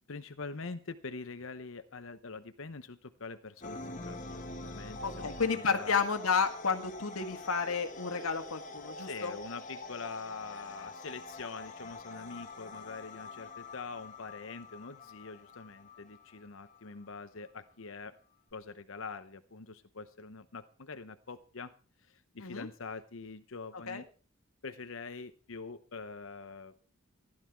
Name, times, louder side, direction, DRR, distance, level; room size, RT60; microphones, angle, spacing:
voice 1, 0.1-4.2 4.6-6.0 9.0-18.1 18.5-21.7 22.1-24.0 24.6-26.8, left 4 dB, 65° left, 10 dB, 0.9 m, -44 dB
sound 1, 3.6-17.0, left 2 dB, 35° left, 1.5 m, -46 dB
voice 2, 5.0-9.3 22.4-22.7 23.9-24.0, left 5 dB, 85° left, 6 dB, 1.8 m, -31 dB
15.5 x 11.5 x 4.6 m, 0.39 s
head